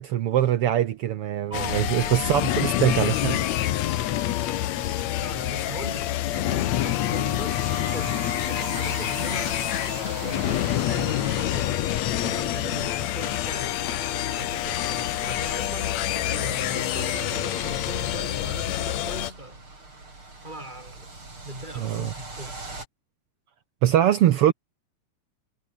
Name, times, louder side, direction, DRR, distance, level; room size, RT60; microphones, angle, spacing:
voice 1, 0.0-3.4 21.8-22.1 23.8-24.5, right 11 dB, 85° right, 1.3 m, -22 dB
sound 1, 1.5-19.3, left 13 dB, 65° left, 2.0 m, -27 dB
voice 2, 1.5-2.5 5.1-8.2 8.5-19.6 20.4-21.1 21.4-22.6, right 1 dB, 10° right, 7.0 m, -39 dB
sound 2, 7.0-22.9, right 2 dB, 35° right, 8.1 m, -42 dB
omnidirectional pair, 3.8 m